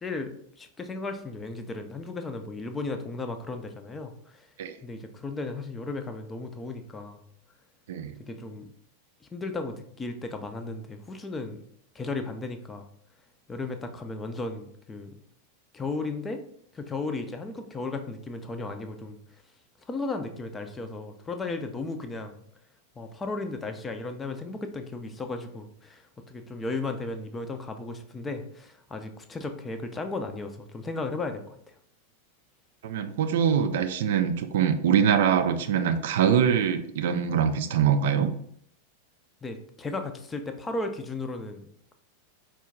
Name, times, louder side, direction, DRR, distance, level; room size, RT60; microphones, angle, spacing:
voice 1, 0.0-4.5 4.8-7.2 8.2-8.7 9.2-11.6 11.9-12.9 13.5-15.2 15.7-16.4 16.7-19.2 19.9-22.5 23.0-31.8 39.4-41.9, left 3 dB, 15° left, 7 dB, 0.4 m, -35 dB
voice 2, 32.8-38.3, right 8 dB, 55° right, 8 dB, 0.3 m, -23 dB
4.5 x 2.2 x 3.6 m, 0.66 s
figure-of-eight pair, 90°, 0 cm